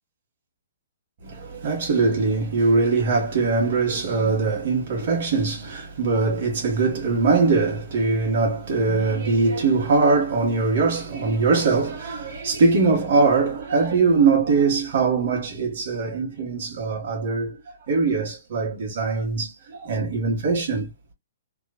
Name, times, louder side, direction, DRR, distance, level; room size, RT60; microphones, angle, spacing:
voice 1, 1.2-17.6 17.9-20.9, right 4 dB, 50° right, 1.2 m, -22 dB
3.0 x 2.1 x 2.4 m
hypercardioid pair, 165°, 0 cm